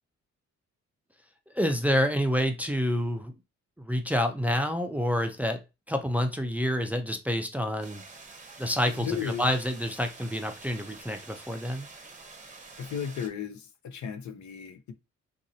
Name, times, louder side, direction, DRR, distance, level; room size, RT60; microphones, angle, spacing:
voice 1, 1.5-3.3 3.8-5.6 5.9-8.0 8.6-11.9, equal, 5° right, 0.4 m, -28 dB
sound 1, 7.8-13.3, right 3 dB, 25° right, 0.8 m, -48 dB
voice 2, 8.9-9.5 12.8-14.9, left 8 dB, 70° left, 0.7 m, -35 dB
2.9 x 2.7 x 2.7 m
cardioid pair, 110°, 29 cm